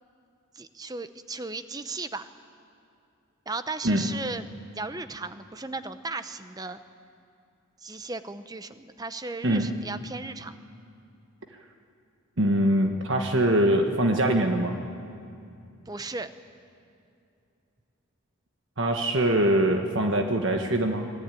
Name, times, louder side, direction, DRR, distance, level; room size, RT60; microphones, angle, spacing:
voice 1, 0.5-2.3 3.5-4.4 4.7-6.8 7.8-10.6 15.9-16.3, right 3 dB, 20° right, 11 dB, 0.8 m, -36 dB
voice 2, 9.4-9.8 12.4-14.8 18.8-21.1, right 1 dB, 60° right, 4 dB, 1.4 m, -23 dB
25.0 x 19.5 x 9.2 m, 2.6 s
head